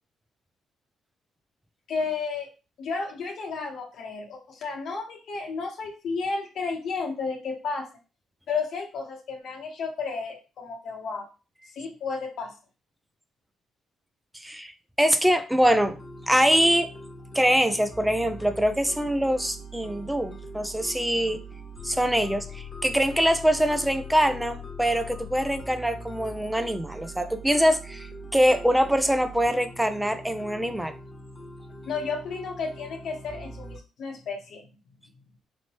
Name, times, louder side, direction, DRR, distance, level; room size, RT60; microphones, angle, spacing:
voice 1, 1.9-2.5 2.8-7.9 8.5-11.3 11.7-12.5 31.9-34.7, left 4 dB, 70° left, 0 dB, 0.9 m, -32 dB
voice 2, 15.0-16.0 16.3-16.9 17.3-21.4 21.8-28.1 28.3-30.9, equal, 5° right, 9 dB, 0.5 m, -23 dB
sound 1, 15.6-33.8, left 1 dB, 35° left, 1.1 m, -42 dB
4.2 x 3.0 x 2.9 m, 0.33 s
cardioid pair, 90°, 0 cm